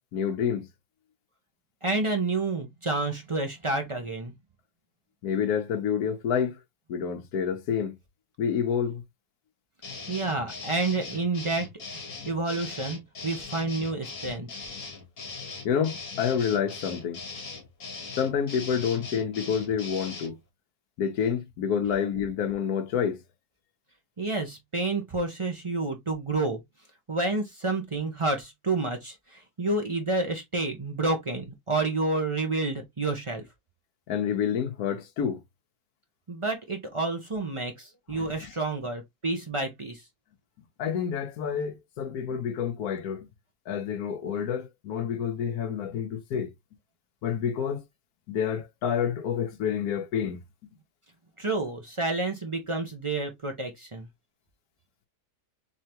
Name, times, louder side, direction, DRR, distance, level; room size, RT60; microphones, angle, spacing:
voice 1, 0.1-0.7 5.2-6.6 6.9-7.9 8.4-9.0 15.6-17.2 18.2-20.4 21.0-23.2 34.1-35.4 38.1-38.5 40.8-43.3 43.7-46.5 47.2-47.8 48.3-50.4, left 7 dB, 75° left, 1.3 m, -28 dB
voice 2, 1.8-4.3 10.1-11.7 12.3-14.5 24.2-26.6 27.1-33.4 36.3-40.0 51.4-54.1, right 2 dB, 35° right, 0.5 m, -29 dB
sound 1, 9.8-20.3, left 4 dB, 55° left, 1.6 m, -40 dB
3.7 x 3.3 x 2.9 m
omnidirectional pair, 1.7 m